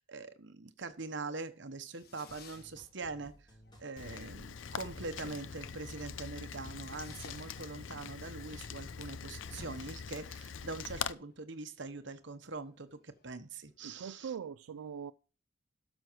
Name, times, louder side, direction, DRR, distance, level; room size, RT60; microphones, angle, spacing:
voice 1, 0.0-3.5 3.8-14.3, right 3 dB, 60° right, 1.1 m, -43 dB
Fireworks, 1.6-13.8, left 3 dB, 50° left, 1.4 m, -58 dB
sound 1, 2.3-10.0, equal, 20° left, 2.8 m, -58 dB
Rain, 4.0-11.1, left 7 dB, 65° left, 0.5 m, -43 dB
voice 2, 13.8-15.1, right 7 dB, 85° right, 0.4 m, -42 dB
12.5 x 6.2 x 4.6 m
head